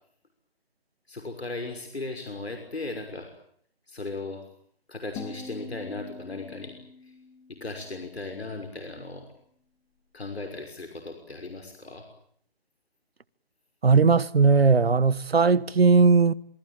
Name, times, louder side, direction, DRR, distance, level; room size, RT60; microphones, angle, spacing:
voice 1, 1.1-3.3 3.9-4.5 4.9-7.2 7.5-9.3 10.1-12.1, left 3 dB, 80° left, 5.9 m, -37 dB
sound 1, 5.2-8.2, left 4 dB, 10° left, 2.3 m, -44 dB
voice 2, 13.8-16.3, right 4 dB, 75° right, 1.3 m, -18 dB
27.0 x 22.0 x 9.0 m
figure-of-eight pair, 165°, 31 cm